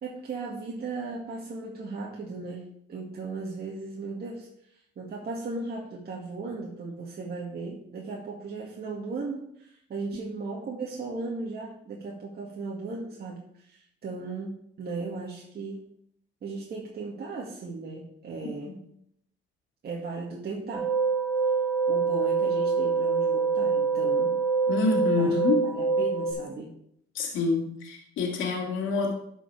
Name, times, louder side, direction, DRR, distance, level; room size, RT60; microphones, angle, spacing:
voice 1, 0.0-4.5 5.0-15.8 16.4-18.7 19.8-20.9 21.9-24.3 25.1-25.3 25.6-26.7, right 3 dB, 55° right, -3 dB, 1.9 m, -36 dB
sound 1, 20.7-26.3, right 5 dB, ahead, 3.1 m, -25 dB
voice 2, 24.7-25.6 27.1-29.1, left 4 dB, 85° left, 0 dB, 2.2 m, -27 dB
12.0 x 5.3 x 4.7 m, 0.69 s
cardioid pair, 90°, 20 cm